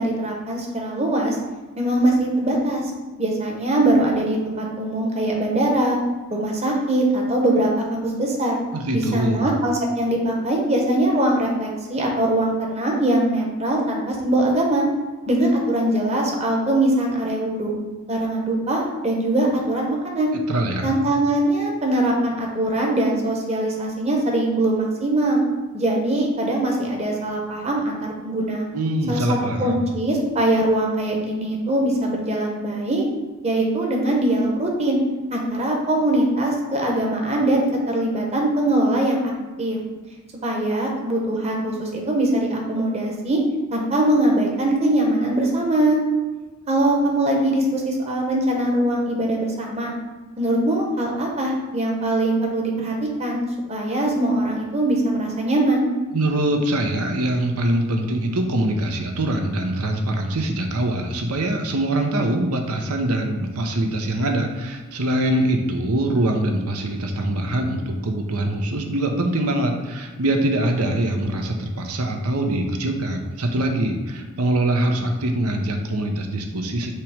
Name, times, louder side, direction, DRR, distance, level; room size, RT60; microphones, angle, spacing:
voice 1, 0.0-1.4 1.8-2.9 3.2-6.0 6.3-8.6 8.9-14.8 15.3-17.7 18.1-20.3 20.8-25.4 25.7-28.7 29.1-33.0 33.4-35.0 35.3-39.2 39.6-39.8 40.4-43.4 43.7-46.0 46.7-49.9 50.4-55.9, right 1 dB, 30° right, -1 dB, 1.1 m, -22 dB
voice 2, 8.7-9.4 20.5-21.0 28.7-29.8 56.1-76.9, right 1 dB, 85° right, 3 dB, 0.9 m, -23 dB
6.6 x 3.0 x 5.1 m, 1.3 s
head